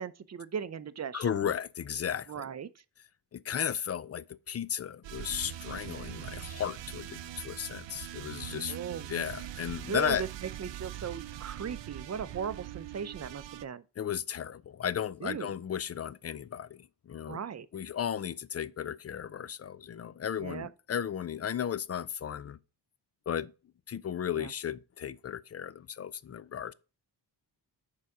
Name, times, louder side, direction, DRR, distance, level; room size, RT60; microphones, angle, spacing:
voice 1, 0.0-1.5 2.3-2.7 8.7-9.1 9.9-13.8 15.2-15.5 17.3-17.7 20.4-20.7 24.4-24.5, right 7 dB, 35° right, 0.6 m, -38 dB
voice 2, 1.1-2.4 3.3-8.7 9.1-10.2 14.0-17.4 17.7-22.6 23.3-23.5 23.9-26.7, left 9 dB, 35° left, 0.4 m, -35 dB
sound 1, 5.0-13.7, right 11 dB, 80° right, 0.6 m, -42 dB
6.8 x 4.9 x 4.8 m
cardioid pair, 95°, 44 cm